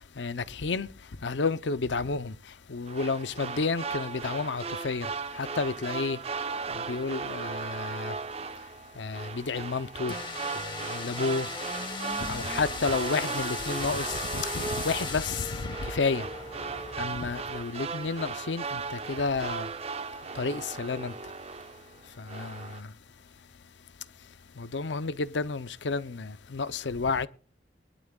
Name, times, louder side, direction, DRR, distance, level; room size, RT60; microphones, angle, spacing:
voice 1, 0.2-0.9 1.2-2.3 2.7-5.1 5.4-6.2 6.7-8.1 9.0-10.1 10.6-11.5 12.2-16.3 17.0-19.7 20.3-21.1 22.2-22.9 24.6-27.3, left 4 dB, 80° left, 0.7 m, -31 dB
sound 1, 2.9-22.0 22.3-22.8, right 5 dB, 35° right, 0.6 m, -37 dB
sound 2, 10.1-17.0, left 3 dB, 25° left, 1.8 m, -37 dB
23.0 x 12.0 x 2.4 m
head